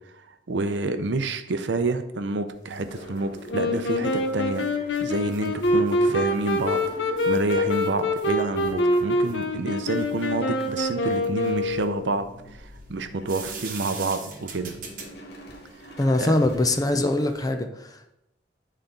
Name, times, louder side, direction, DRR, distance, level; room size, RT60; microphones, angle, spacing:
voice 1, 0.5-4.7 5.0-6.8 7.2-14.7 16.2-16.4, right 2 dB, 80° right, 8 dB, 0.6 m, -28 dB
sound 1, 2.5-17.5, right 5 dB, 50° right, 1.1 m, -45 dB
sound 2, 2.8-17.1, equal, 60° left, 1.1 m, -46 dB
Wind instrument woodwind instrument, 3.5-12.2, left 1 dB, 90° left, 0.9 m, -25 dB
voice 2, 16.0-18.2, left 1 dB, 20° left, 6 dB, 0.6 m, -23 dB
9.8 x 4.2 x 3.9 m, 0.84 s
head